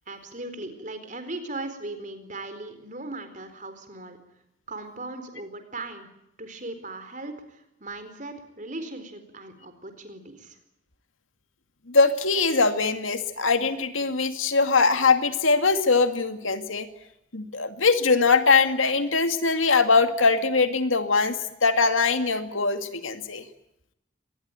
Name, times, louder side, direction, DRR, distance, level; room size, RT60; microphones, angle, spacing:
voice 1, 0.1-4.2 4.7-6.1 6.4-10.6, right 2 dB, 40° right, 9 dB, 4.2 m, -38 dB
voice 2, 11.9-16.9 17.3-23.4, left 4 dB, 90° left, 8 dB, 2.3 m, -22 dB
24.5 x 20.5 x 9.1 m, 0.80 s
head